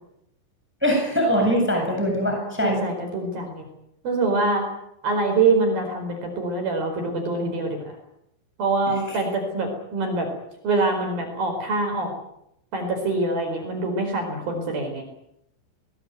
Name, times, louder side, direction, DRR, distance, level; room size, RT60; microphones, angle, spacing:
voice 1, 0.8-2.8 8.9-9.2, equal, ahead, 1 dB, 7.5 m, -22 dB
voice 2, 2.6-3.6 4.0-4.6 5.0-7.9 8.6-10.3 10.6-12.1 12.7-15.0, right 3 dB, 50° right, 4 dB, 6.3 m, -24 dB
22.5 x 20.0 x 9.4 m, 0.80 s
omnidirectional pair, 5.6 m